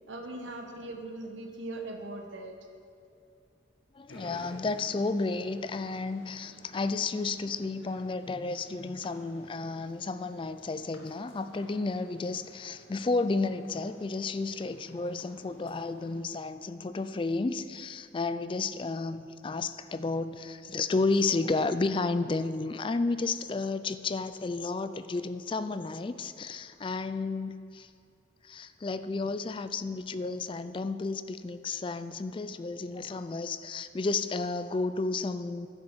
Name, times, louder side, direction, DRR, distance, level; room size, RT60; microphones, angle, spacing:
voice 1, 0.1-2.5, right 2 dB, 75° right, 3 dB, 1.1 m, -40 dB
voice 2, 3.9-27.9 28.4-35.7, left 3 dB, 25° left, 12 dB, 0.3 m, -32 dB
sound 1, 4.1-16.2, left 1 dB, 90° left, 2.0 m, -54 dB
11.0 x 7.7 x 7.4 m, 2.5 s
head